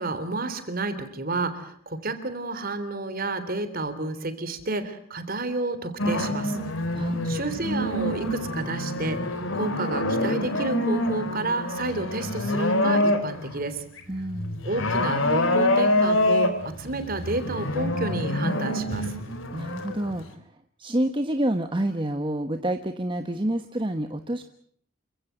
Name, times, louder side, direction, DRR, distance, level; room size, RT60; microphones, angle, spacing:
voice 1, 0.0-6.6 7.2-9.2 9.5-13.8 14.6-19.0, right 2 dB, 45° right, 10 dB, 3.4 m, -30 dB
sound 1, 6.0-13.6 14.0-20.3, left 1 dB, 70° left, 3.7 m, -26 dB
voice 2, 14.1-14.6 19.5-20.3 20.8-24.5, right 1 dB, 25° right, 7 dB, 1.2 m, -28 dB
28.0 x 16.5 x 9.1 m, 0.62 s
head